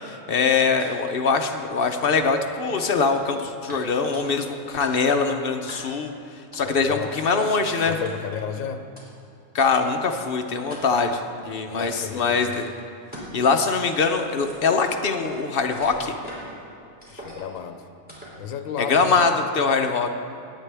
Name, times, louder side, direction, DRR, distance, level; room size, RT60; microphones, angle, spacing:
voice 1, 0.1-6.1 6.5-8.0 9.5-12.6 13.3-16.1 18.8-20.1, left 4 dB, 55° left, 5 dB, 0.7 m, -23 dB
sound 1, 0.8-0.9 1.3-1.5 2.0-2.5 2.8-3.3 3.7-3.8 4.1-4.5 4.8-5.2 5.7-6.1 6.5-6.8 7.2-7.3 8.0-8.4 9.0-9.1 9.6-9.7 10.1-10.2 10.7-11.1 11.8-12.2 12.5-12.6 13.1-13.4 13.7-15.4 15.7-16.6 17.0-17.6 18.1-18.4, equal, 5° right, 2.9 m, -43 dB
voice 2, 6.6-7.1 7.8-8.9 11.7-12.5 17.1-17.8 18.4-19.2, left 7 dB, 80° left, 8 dB, 1.1 m, -33 dB
18.0 x 8.5 x 3.4 m, 2.6 s
omnidirectional pair, 1.4 m